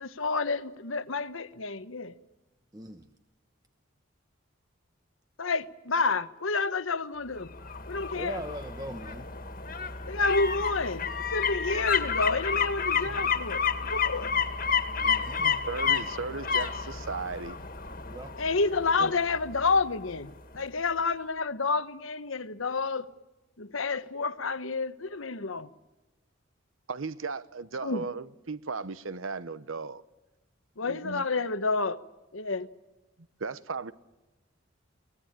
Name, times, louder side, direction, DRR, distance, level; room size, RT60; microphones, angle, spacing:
voice 1, 0.0-2.1 5.4-7.5 7.9-8.4 10.1-14.4 18.4-23.1 23.6-25.7 27.8-28.0 30.8-32.0 32.3-32.6, left 4 dB, 75° left, 1.1 m, -29 dB
voice 2, 2.7-3.1 8.2-9.3 14.9-15.4 18.1-18.3, right 1 dB, 20° right, 1.0 m, -40 dB
sound 1, 7.4-20.2 20.5-20.6, left 6 dB, 45° left, 2.0 m, -31 dB
voice 3, 15.3-17.6 19.0-19.1 26.9-30.0 30.9-31.2 33.4-33.9, right 4 dB, 75° right, 0.9 m, -36 dB
23.5 x 18.5 x 8.8 m
head